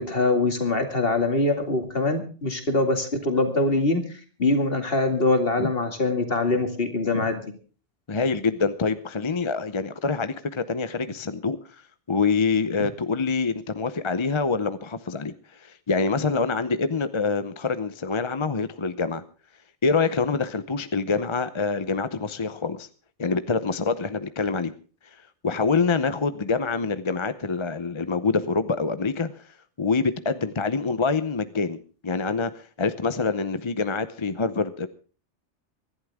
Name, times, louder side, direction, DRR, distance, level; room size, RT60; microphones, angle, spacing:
voice 1, 0.0-4.0 4.4-7.5, left 2 dB, 50° left, 2.5 m, -23 dB
voice 2, 8.1-11.6 12.1-19.2 19.8-22.9 23.2-24.7 25.4-29.3 29.8-34.9, left 4 dB, 30° left, 0.7 m, -26 dB
25.0 x 11.5 x 3.6 m
omnidirectional pair, 1.2 m